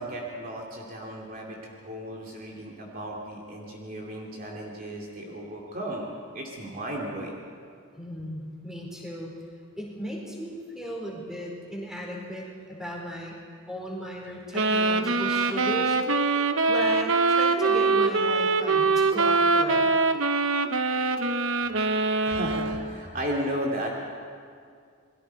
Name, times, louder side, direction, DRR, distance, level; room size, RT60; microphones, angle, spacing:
voice 1, 0.0-6.1 6.3-7.4 22.2-23.9, right 1 dB, 40° right, -2 dB, 2.5 m, -34 dB
voice 2, 8.0-9.4 9.8-13.4 13.7-16.0 16.7-19.9, equal, ahead, -3 dB, 4.6 m, -36 dB
sound 1, 14.5-22.9, right 3 dB, 65° right, 1.0 m, -23 dB
28.5 x 21.5 x 4.6 m, 2.2 s
head